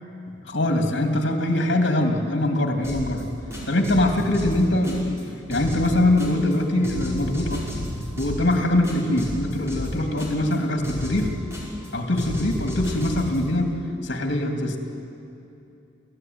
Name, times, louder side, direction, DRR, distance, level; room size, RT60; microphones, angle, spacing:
voice 1, 0.4-3.3 3.7-5.2 5.5-7.6 8.2-11.3 11.9-13.7 14.0-14.8, left 1 dB, 60° left, 3 dB, 3.1 m, -23 dB
sound 1, 2.8-3.2 3.5-5.2 5.5-6.5 6.8-8.5 8.8-10.5 10.8-11.9 12.2-13.4, equal, 15° right, 5.7 m, -32 dB
29.0 x 15.0 x 9.7 m, 2.7 s
head